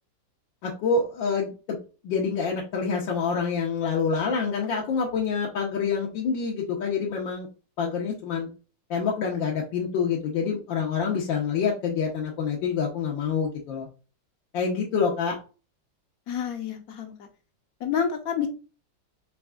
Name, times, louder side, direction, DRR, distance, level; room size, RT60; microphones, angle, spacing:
voice 1, 0.6-1.8 2.0-7.5 7.8-8.5 8.9-13.9 14.5-15.4, left 5 dB, 80° left, -3 dB, 1.6 m, -27 dB
voice 2, 16.3-17.3 17.8-18.5, left 7 dB, 60° left, 6 dB, 1.0 m, -28 dB
5.3 x 3.4 x 2.3 m, 0.34 s
omnidirectional pair, 2.0 m